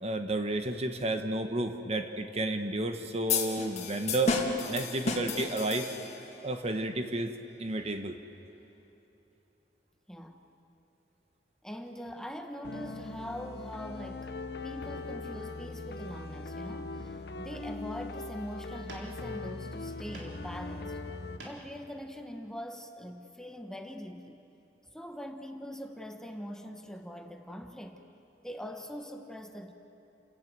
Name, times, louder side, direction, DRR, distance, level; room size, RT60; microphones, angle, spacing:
voice 1, 0.0-4.4 4.7-5.9 6.4-7.3 7.6-8.1, right 2 dB, 35° right, 7 dB, 1.2 m, -31 dB
sound 1, 3.3-6.4, left 4 dB, 40° left, 2.4 m, -32 dB
voice 2, 11.6-21.0 21.4-24.4 24.9-28.0 28.4-29.7, equal, 5° left, 4 dB, 1.2 m, -42 dB
sound 2, 12.6-21.4, left 3 dB, 65° left, 1.0 m, -40 dB
sound 3, 15.4-15.6 16.1-16.9 17.3-17.5 17.8-18.2 18.9-19.5 19.9-20.5 20.8-21.8, right 1 dB, 85° right, 3.6 m, -50 dB
29.5 x 17.5 x 7.6 m, 2.9 s
head